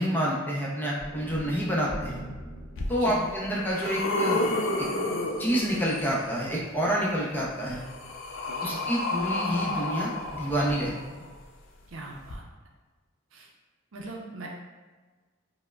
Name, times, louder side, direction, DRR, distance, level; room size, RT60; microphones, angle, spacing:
voice 1, 0.0-2.2 2.9-4.5 5.4-7.8 8.6-10.9, equal, 10° left, -5 dB, 0.5 m, -28 dB
sound 1, 1.0-5.2, equal, 50° right, 0.8 m, -43 dB
sound 2, 2.8-2.9 3.4-6.2 7.4-11.3 12.2-12.3, left 2 dB, 70° left, 0.4 m, -31 dB
voice 2, 11.9-12.4 13.3-13.5 13.9-14.5, right 2 dB, 75° right, 0 dB, 0.5 m, -41 dB
4.5 x 2.0 x 2.3 m, 1.4 s
head